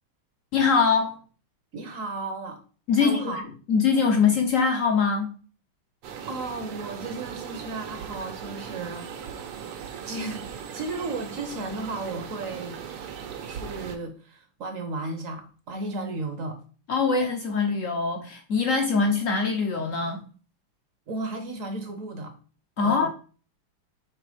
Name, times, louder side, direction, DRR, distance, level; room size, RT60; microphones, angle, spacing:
voice 1, 0.5-1.2 2.9-3.4 3.7-5.3 16.9-20.2 22.8-23.1, left 5 dB, 90° left, 0.7 m, -23 dB
voice 2, 1.7-2.6 3.0-3.5 6.3-9.1 10.0-12.8 13.4-16.6 21.1-22.3 22.8-23.1, right 2 dB, 65° right, 0.8 m, -34 dB
sound 1, 6.0-14.0, right 7 dB, 85° right, 1.9 m, -38 dB
6.4 x 3.4 x 4.9 m
omnidirectional pair, 2.4 m